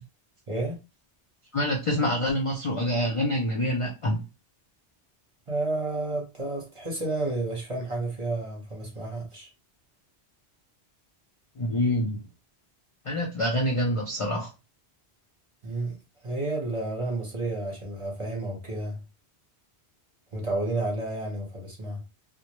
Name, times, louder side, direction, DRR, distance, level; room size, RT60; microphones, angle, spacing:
voice 1, 0.5-0.8 5.5-9.5 15.6-16.0 16.2-19.0 20.3-22.0, right 2 dB, 30° right, 0.8 m, -31 dB
voice 2, 1.5-4.2 11.6-12.2 13.0-14.5, equal, 45° left, 0.4 m, -26 dB
2.1 x 2.1 x 2.9 m
omnidirectional pair, 1.1 m